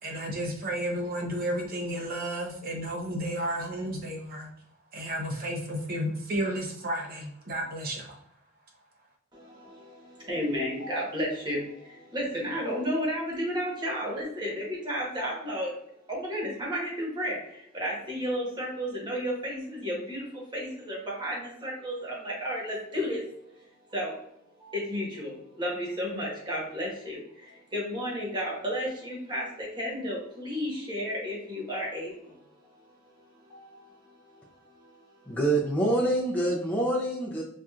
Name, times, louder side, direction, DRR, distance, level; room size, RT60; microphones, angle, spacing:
voice 1, 0.0-4.5 4.9-8.2, right 1 dB, 45° right, 1 dB, 0.8 m, -32 dB
voice 2, 9.3-15.7 16.1-23.2 23.5-24.2 24.6-35.3, equal, 20° right, -4 dB, 1.2 m, -33 dB
voice 3, 35.3-37.4, right 1 dB, 10° left, -4 dB, 0.5 m, -26 dB
4.3 x 2.4 x 2.4 m, 0.72 s
head